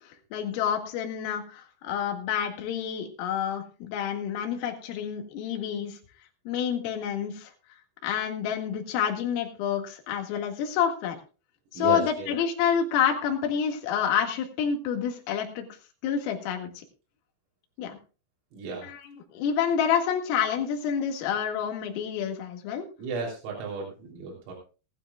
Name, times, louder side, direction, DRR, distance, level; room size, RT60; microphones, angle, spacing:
voice 1, 0.0-6.0 6.5-7.5 8.0-11.2 11.7-15.7 16.0-16.7 17.8-18.0 18.8-22.9, left 8 dB, 80° left, 3 dB, 4.6 m, -28 dB
voice 2, 11.7-12.3 18.5-18.9 23.0-24.5, right 4 dB, 85° right, -1 dB, 6.3 m, -34 dB
19.0 x 13.0 x 2.4 m, 0.34 s
omnidirectional pair, 6.0 m